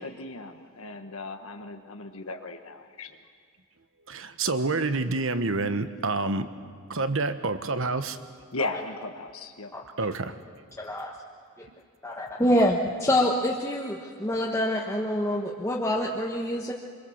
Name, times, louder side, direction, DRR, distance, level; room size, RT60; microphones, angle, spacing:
voice 1, 0.0-3.2 8.5-9.7, left 3 dB, 75° left, 5 dB, 1.3 m, -36 dB
voice 2, 4.1-6.5 6.9-8.2 10.0-10.4, right 3 dB, 65° right, 10 dB, 1.2 m, -28 dB
voice 3, 10.8-11.1 12.0-16.7, left 1 dB, 15° left, -3 dB, 1.3 m, -26 dB
25.5 x 22.5 x 7.2 m, 2.1 s
head